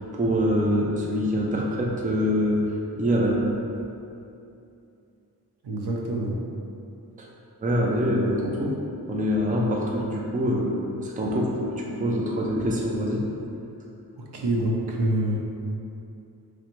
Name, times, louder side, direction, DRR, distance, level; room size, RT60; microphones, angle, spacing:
voice 1, 0.0-2.6 3.0-3.4 7.2-7.3 7.6-8.7 9.1-13.2, equal, 20° right, -3 dB, 0.5 m, -25 dB
voice 2, 5.6-6.4 14.3-15.4, right 1 dB, 75° right, -2 dB, 0.7 m, -26 dB
5.0 x 3.2 x 3.0 m, 2.7 s
wide cardioid pair, 145°, 39 cm